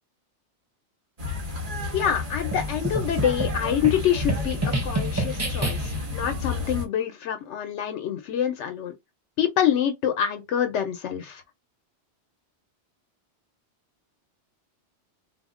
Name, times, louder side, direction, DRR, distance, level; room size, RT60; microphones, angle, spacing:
sound 1, 1.2-6.8, left 3 dB, 35° right, 0.9 m, -31 dB
voice 1, 1.9-8.9 9.4-11.4, left 9 dB, 80° left, 0.9 m, -26 dB
sound 2, 2.5-6.1, right 2 dB, 20° right, 0.4 m, -29 dB
2.3 x 2.1 x 3.6 m
omnidirectional pair, 1.2 m